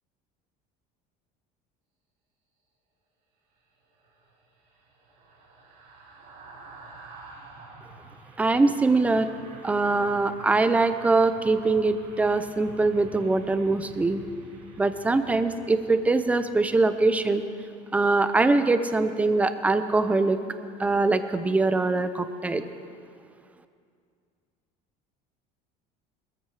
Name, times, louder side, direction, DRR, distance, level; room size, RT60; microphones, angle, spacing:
sound 1, 3.9-17.3 17.6-17.8, right 3 dB, 80° right, 5.6 m, -48 dB
voice 1, 8.4-9.3 9.6-14.2 14.8-17.4 17.9-20.4 20.8-22.6, right 3 dB, 10° right, 11 dB, 0.5 m, -23 dB
20.5 x 14.0 x 4.8 m, 2.3 s
cardioid pair, 160°, 17 cm